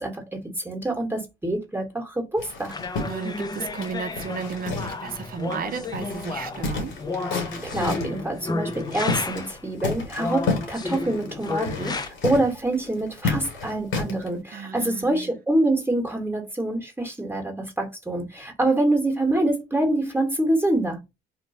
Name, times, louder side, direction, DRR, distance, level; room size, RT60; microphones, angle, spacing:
voice 1, 0.0-2.8 7.6-21.0, right 1 dB, 10° right, 1.2 m, -26 dB
sound 1, 2.4-5.2 5.5-5.6 5.9-8.2 8.7-9.5 9.8-14.3, left 3 dB, 85° left, 1.7 m, -31 dB
sound 2, 2.7-9.6 10.2-12.1, left 3 dB, 20° left, 0.5 m, -32 dB
voice 2, 3.0-6.9 14.5-15.3, right 6 dB, 45° right, 0.7 m, -34 dB
3.0 x 2.2 x 4.0 m
cardioid pair, 90°, 20 cm